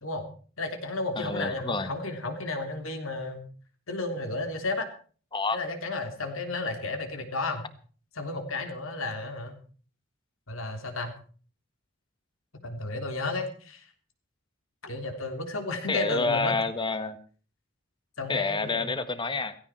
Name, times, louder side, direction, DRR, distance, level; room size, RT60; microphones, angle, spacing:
voice 1, 0.6-3.5 3.9-4.9 5.5-7.7 8.2-9.5 10.5-11.1 12.6-13.9 14.8-16.6 18.2-18.9, left 2 dB, 75° left, 5 dB, 3.4 m, -32 dB
voice 2, 1.1-1.9 5.3-5.6 15.9-17.2 18.3-19.5, left 3 dB, 25° left, 12 dB, 1.4 m, -28 dB
16.5 x 16.5 x 4.5 m, 0.42 s
head